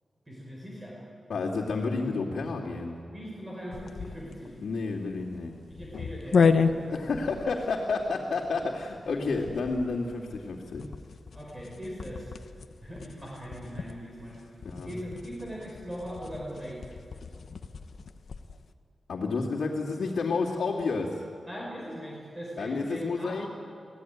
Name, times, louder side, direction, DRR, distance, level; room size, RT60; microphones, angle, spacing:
voice 1, 0.3-0.9 3.1-4.5 5.7-7.0 11.3-12.3 12.8-14.4 14.9-16.9 21.5-23.3, equal, 20° right, -4 dB, 5.4 m, -40 dB
voice 2, 1.3-3.0 4.6-5.6 6.9-10.8 14.6-14.9 19.1-21.2 22.6-23.5, left 4 dB, 85° left, -7 dB, 2.6 m, -30 dB
sound 1, 3.7-18.6, left 5 dB, 70° left, 1.0 m, -33 dB
23.5 x 17.0 x 9.5 m, 2.5 s
wide cardioid pair, 105°, 0 cm